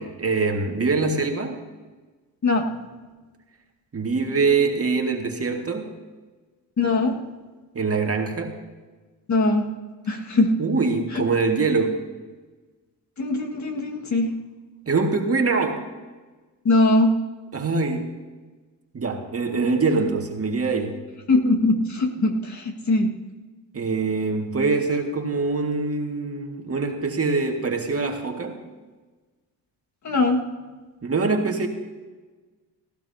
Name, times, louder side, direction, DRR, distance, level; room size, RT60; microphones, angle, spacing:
voice 1, 0.0-1.6 3.9-5.9 7.8-8.5 10.6-12.0 14.9-15.8 17.5-18.2 18.9-21.0 23.7-28.6 31.0-31.7, right 4 dB, 35° right, 3 dB, 1.8 m, -24 dB
voice 2, 2.4-2.7 6.8-7.2 9.3-9.7 10.1-10.6 11.1-11.2 13.2-14.3 16.7-17.2 21.3-23.1 30.0-30.4, left 2 dB, 40° left, 2 dB, 1.8 m, -21 dB
18.0 x 15.5 x 2.8 m, 1.3 s
supercardioid pair, 75°, 42 cm